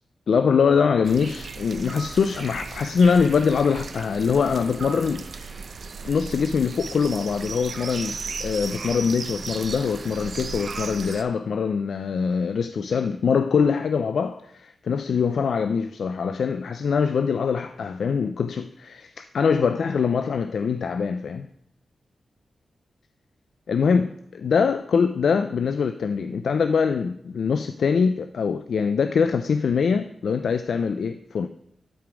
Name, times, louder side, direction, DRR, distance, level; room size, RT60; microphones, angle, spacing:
voice 1, 0.3-5.6 6.0-21.5 23.7-31.5, left 6 dB, 70° left, 0.3 m, -23 dB
sound 1, 1.0-11.2, right 5 dB, 55° right, 0.6 m, -36 dB
11.5 x 4.9 x 5.0 m
wide cardioid pair, 150°, 0 cm